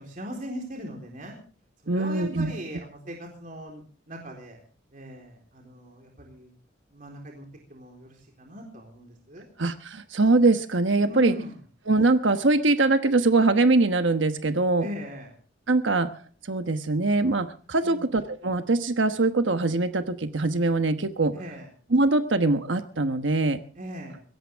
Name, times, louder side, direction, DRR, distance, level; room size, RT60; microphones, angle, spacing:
voice 1, 0.0-1.4 1.8-4.6 4.9-6.5 6.9-9.4 11.0-11.6 14.8-15.3 17.8-18.1 21.3-21.7 23.8-24.2, equal, 45° right, 1 dB, 4.0 m, -39 dB
voice 2, 1.9-2.5 9.6-11.3 11.9-14.9 15.7-16.1 16.4-21.3 21.9-23.6, right 3 dB, 80° right, 8 dB, 1.1 m, -22 dB
22.5 x 17.0 x 3.5 m, 0.38 s
head